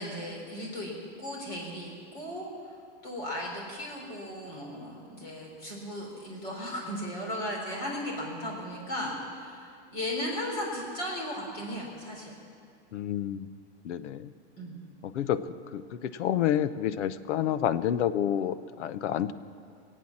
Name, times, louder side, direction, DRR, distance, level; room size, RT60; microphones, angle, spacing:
voice 1, 0.0-2.7 3.0-12.3 14.6-14.8, equal, 25° left, -1 dB, 3.6 m, -36 dB
voice 2, 12.9-13.5 13.8-14.3 15.0-15.4 15.7-19.3, left 10 dB, 80° left, 15 dB, 0.8 m, -29 dB
22.5 x 8.4 x 7.3 m, 2.3 s
supercardioid pair, 180°, 35 cm